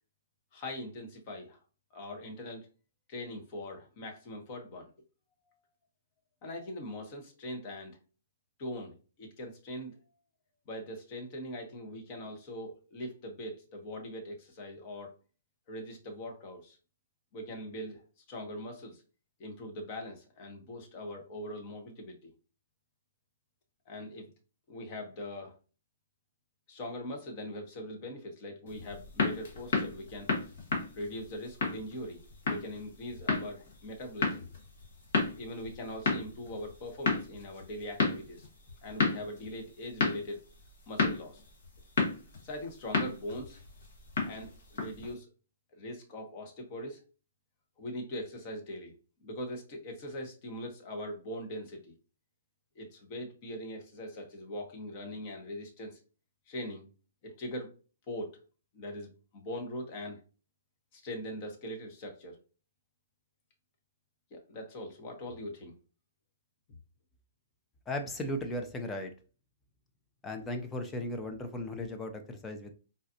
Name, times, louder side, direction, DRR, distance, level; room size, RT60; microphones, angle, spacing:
voice 1, 0.5-1.6 1.9-2.7 3.1-4.9 6.4-8.0 8.6-10.0 10.7-15.1 15.7-16.8 17.3-18.0 18.3-19.0 19.4-22.3 23.9-24.3 24.7-25.5 26.7-30.3 30.9-34.5 35.3-38.5 38.8-40.4 40.9-41.4 42.4-43.6 44.2-45.3 45.8-47.0 47.8-48.9 49.2-51.9 52.7-56.0 56.5-56.9 57.2-57.7 58.1-58.4 58.7-60.2 60.9-62.4 64.3-65.8, left 1 dB, 40° left, 1.0 m, -41 dB
sound 1, 28.7-45.1, left 4 dB, 60° left, 1.3 m, -34 dB
voice 2, 67.9-69.1 70.2-72.7, left 1 dB, 15° left, 0.6 m, -36 dB
3.9 x 2.4 x 2.7 m
hypercardioid pair, 125°, 0 cm